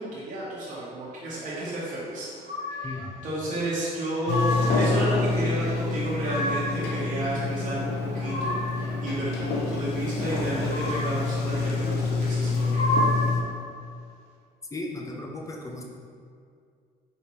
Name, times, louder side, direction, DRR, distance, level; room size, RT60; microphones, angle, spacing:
voice 1, 0.0-2.3 2.8-3.0 3.2-12.9, right 1 dB, 50° right, -10 dB, 1.2 m, -32 dB
sound 1, 2.4-3.0 3.9-4.9 5.8-6.8 7.8-8.9 10.4-11.3 12.4-13.5, left 1 dB, 40° left, 1.4 m, -30 dB
Sliding door, 4.3-13.4, left 3 dB, 75° left, 0.5 m, -27 dB
voice 2, 14.7-15.8, left 2 dB, 20° left, 1 dB, 0.5 m, -35 dB
4.3 x 3.4 x 2.9 m, 2.2 s
cardioid pair, 110°, 17 cm